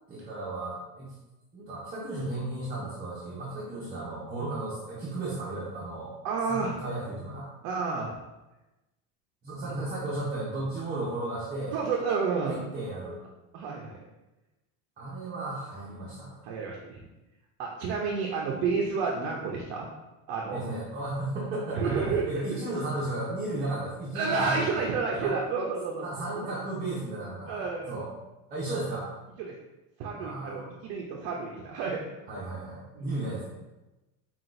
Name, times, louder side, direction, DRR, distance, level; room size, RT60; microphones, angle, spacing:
voice 1, 0.1-1.1 1.5-6.1 6.5-7.5 9.4-11.8 12.5-13.2 15.0-16.4 20.5-24.9 25.1-25.4 26.0-28.1 28.5-29.1 30.2-30.7 32.3-33.4, right 2 dB, 20° right, -6 dB, 0.7 m, -34 dB
voice 2, 6.2-6.7 7.6-8.1 11.7-12.6 13.5-14.0 16.4-17.0 17.6-19.9 20.3-20.7 21.7-22.3 24.1-26.1 27.5-27.9 29.4-29.5 30.0-32.1 33.0-33.1, right 4 dB, 55° right, -1 dB, 0.6 m, -30 dB
5.6 x 2.5 x 2.5 m, 1.0 s
cardioid pair, 140°, 42 cm